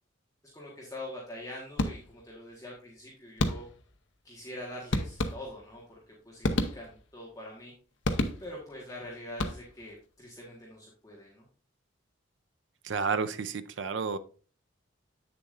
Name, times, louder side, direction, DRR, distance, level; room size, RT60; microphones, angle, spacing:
voice 1, 0.5-3.6 4.2-6.0 6.2-7.7 8.4-11.4, left 1 dB, 15° left, -4 dB, 1.5 m, -44 dB
sound 1, 1.8-2.3 3.4-3.9 4.9-5.8 6.4-7.2 8.0-8.7 9.3-9.9, left 1 dB, 70° left, 0.7 m, -31 dB
voice 2, 12.8-14.2, right 5 dB, 70° right, 12 dB, 0.5 m, -31 dB
8.3 x 6.8 x 2.5 m, 0.38 s
head